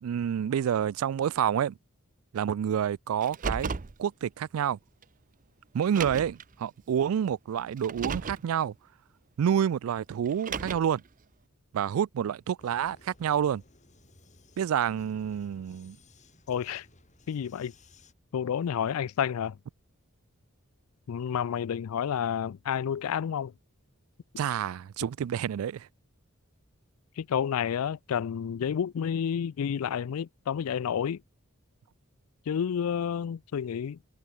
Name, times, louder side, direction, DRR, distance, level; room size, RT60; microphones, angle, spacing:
voice 1, 0.0-1.7 2.3-3.7 4.0-4.8 5.7-8.7 9.4-11.0 11.7-13.6 14.6-16.0 24.4-25.9, right 8 dB, 75° right, 0.3 m, -28 dB
Car, 3.2-3.9 5.0-5.1 5.8-6.4 7.8-8.4 10.3-11.0, right 5 dB, 40° right, 0.6 m, -34 dB
Vehicle, 12.6-18.1, left 2 dB, 35° left, 4.9 m, -59 dB
voice 2, 16.5-16.9 17.3-17.7 18.3-19.6 21.1-23.5 27.2-31.2 32.5-34.0, left 8 dB, 85° left, 0.4 m, -30 dB
head